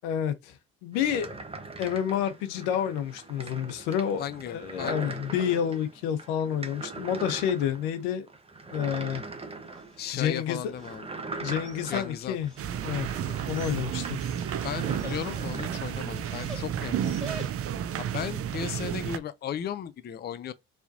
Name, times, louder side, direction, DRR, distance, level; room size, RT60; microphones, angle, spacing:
voice 1, 0.0-0.5 0.8-1.3 1.8-8.3 8.7-9.2 10.1-10.6 11.4-12.5 12.8-13.1 13.5-14.2, left 9 dB, 80° left, 0.9 m, -29 dB
sound 1, 0.9-15.8, right 3 dB, 20° right, 1.2 m, -41 dB
voice 2, 4.2-5.2 10.0-11.1 11.9-12.4 14.2-14.3 14.6-17.4 18.0-20.5, left 9 dB, 35° left, 0.5 m, -36 dB
Dog, 9.6-17.9, equal, ahead, 2.2 m, -47 dB
sound 2, 12.6-19.2, right 9 dB, 50° right, 0.7 m, -32 dB
4.5 x 3.5 x 2.7 m
hypercardioid pair, 65°, 30 cm